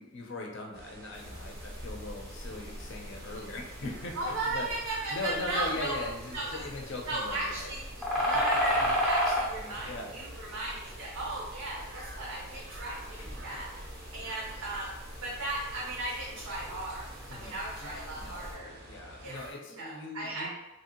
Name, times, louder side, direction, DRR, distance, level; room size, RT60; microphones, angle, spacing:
voice 1, 0.0-4.7 5.1-7.7 8.2-8.4 9.6-10.1 13.2-13.3 17.3-20.5, left 2 dB, 55° left, 1 dB, 0.5 m, -40 dB
sound 1, 0.7-19.5, right 1 dB, 45° right, 0.5 m, -49 dB
sound 2, 1.1-18.5, equal, 5° left, 0.5 m, -36 dB
voice 2, 4.1-6.0 6.3-6.6 7.1-13.7 14.1-14.9 15.2-18.7 19.2-19.4 19.8-20.5, right 2 dB, 80° right, -5 dB, 0.7 m, -36 dB
2.9 x 2.6 x 2.8 m, 1.0 s
head